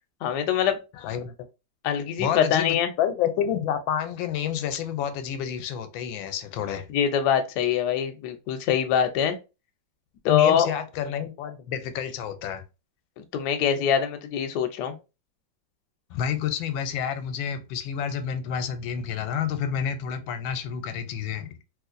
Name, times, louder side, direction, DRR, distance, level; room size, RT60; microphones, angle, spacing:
voice 1, 0.2-0.8 1.8-2.9 6.9-9.4 10.2-10.7 13.2-15.0, left 8 dB, 70° left, 1.1 m, -24 dB
voice 2, 1.0-1.3 2.2-6.9 10.2-12.6 16.1-21.5, left 8 dB, 85° left, 1.3 m, -29 dB
3.1 x 3.0 x 2.4 m
omnidirectional pair, 2.1 m